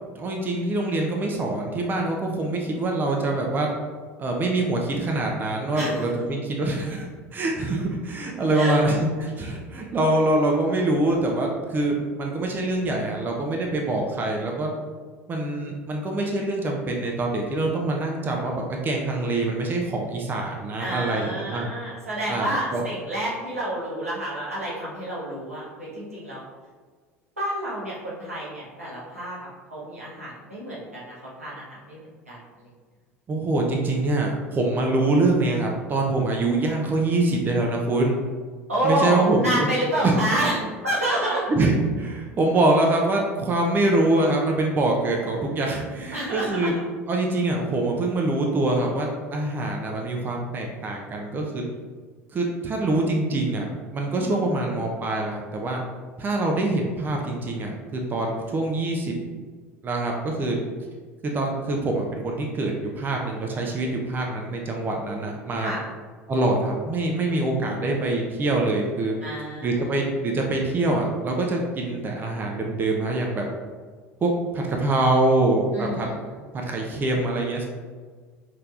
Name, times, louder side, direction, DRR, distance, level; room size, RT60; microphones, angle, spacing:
voice 1, 0.1-3.7 4.2-14.7 15.3-21.7 22.3-22.8 33.3-38.2 38.8-39.7 40.0-40.7 41.5-46.7 47.1-51.6 52.3-55.8 56.2-59.1 59.8-60.6 61.2-65.7 66.3-69.1 69.6-73.4 74.2-76.1 76.5-77.7, right 2 dB, 25° right, 1 dB, 0.6 m, -24 dB
voice 2, 20.8-26.4 27.4-29.4 29.7-32.4 38.7-41.5 46.1-46.7 54.1-54.4 65.6-65.8 69.2-70.0 75.7-76.2, right 1 dB, 85° right, -8 dB, 1.4 m, -28 dB
5.7 x 3.2 x 2.4 m, 1.5 s
figure-of-eight pair, 70°, 7 cm